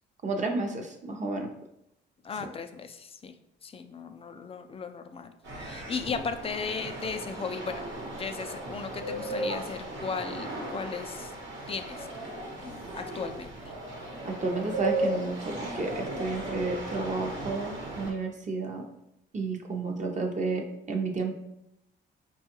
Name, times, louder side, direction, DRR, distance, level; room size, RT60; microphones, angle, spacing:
voice 1, 0.2-1.5 2.4-2.5 14.2-18.9 19.3-21.3, right 3 dB, 40° right, 3 dB, 0.7 m, -31 dB
voice 2, 2.2-3.3 3.6-5.3 5.6-7.9 8.2-11.3 11.7-13.5, left 5 dB, 30° left, 8 dB, 0.3 m, -36 dB
sound 1, 5.4-18.1, right 1 dB, 75° right, 1.0 m, -36 dB
4.4 x 2.3 x 2.9 m, 0.82 s
cardioid pair, 90°, 20 cm